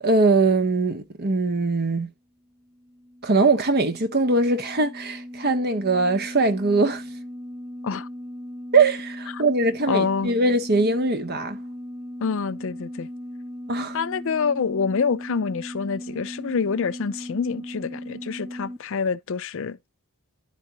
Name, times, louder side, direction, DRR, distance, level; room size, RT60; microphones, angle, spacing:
voice 1, 0.0-2.1 3.2-7.0 8.7-11.6 13.7-14.0, right 3 dB, 45° right, 1.0 m, -21 dB
sound 1, 2.6-18.8, equal, 15° right, 1.6 m, -38 dB
voice 2, 9.9-10.3 12.2-13.1 13.9-19.8, left 5 dB, 60° left, 0.5 m, -26 dB
11.0 x 4.9 x 2.9 m
head